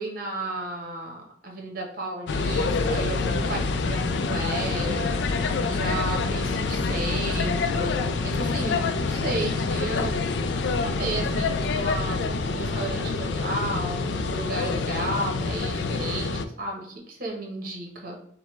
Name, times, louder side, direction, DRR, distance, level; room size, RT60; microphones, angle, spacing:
voice 1, 0.0-10.2 10.8-18.2, right 2 dB, 55° right, 1 dB, 1.1 m, -33 dB
sound 1, 2.3-16.5, left 4 dB, 75° left, 0.4 m, -26 dB
5.1 x 2.2 x 3.2 m, 0.65 s
head